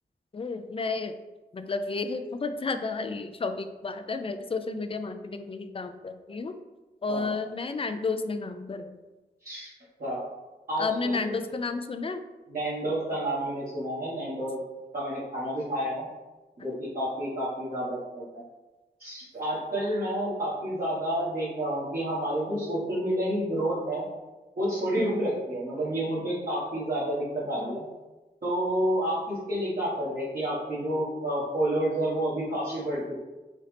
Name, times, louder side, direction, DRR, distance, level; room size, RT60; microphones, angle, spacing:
voice 1, 0.3-1.1 1.5-6.5 7.0-9.0 10.8-12.2 25.0-25.2 27.6-27.8, left 4 dB, 30° left, 8 dB, 0.4 m, -32 dB
voice 2, 10.7-11.3 12.5-14.6 14.9-16.0 16.6-18.4 19.0-24.0 24.6-27.8 28.4-33.2, right 1 dB, 55° right, -10 dB, 1.4 m, -29 dB
4.2 x 3.7 x 3.3 m, 1.1 s
wide cardioid pair, 70°, 18 cm